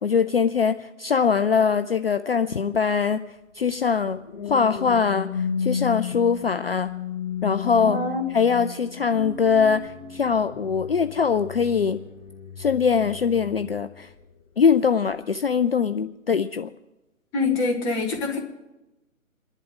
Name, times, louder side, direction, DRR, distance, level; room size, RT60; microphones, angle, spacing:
voice 1, 0.0-3.2 3.6-4.2 4.5-5.3 5.6-6.9 7.4-8.0 8.3-12.0 12.6-14.1 14.6-16.7, left 6 dB, 45° left, 10 dB, 0.5 m, -22 dB
sound 1, 3.9-14.4 15.0-15.2, left 7 dB, 25° left, 1.4 m, -34 dB
voice 2, 7.8-8.2 17.3-18.4, left 3 dB, 10° left, 0 dB, 0.9 m, -25 dB
28.5 x 11.0 x 3.8 m, 1.0 s
figure-of-eight pair, 140°, 42 cm